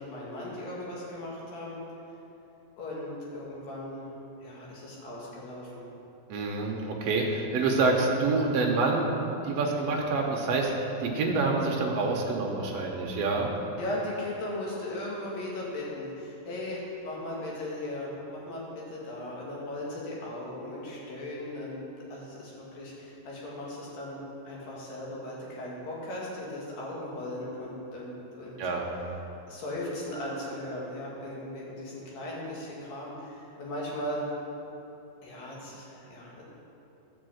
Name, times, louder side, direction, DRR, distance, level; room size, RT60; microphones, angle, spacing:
voice 1, 0.0-1.8 2.8-4.1 4.4-5.8 13.8-21.8 22.1-24.2 24.5-28.6 29.5-34.3 35.2-36.4, left 1 dB, 70° left, -5 dB, 3.7 m, -37 dB
voice 2, 6.3-13.5 28.6-28.9, right 3 dB, 85° right, -1 dB, 1.4 m, -27 dB
12.0 x 5.5 x 7.7 m, 2.9 s
omnidirectional pair, 4.2 m